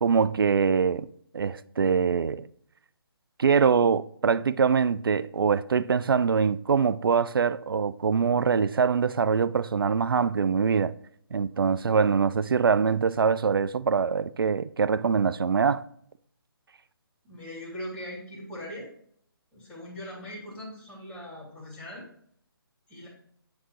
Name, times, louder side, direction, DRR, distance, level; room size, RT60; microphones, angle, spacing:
voice 1, 0.0-1.1 1.3-2.5 3.4-10.9 11.3-15.8, right 6 dB, 65° right, 0.4 m, -23 dB
voice 2, 17.2-18.9 19.5-22.0 22.9-23.1, equal, 10° left, 2.8 m, -40 dB
9.2 x 3.8 x 3.1 m
figure-of-eight pair, 145°, 13 cm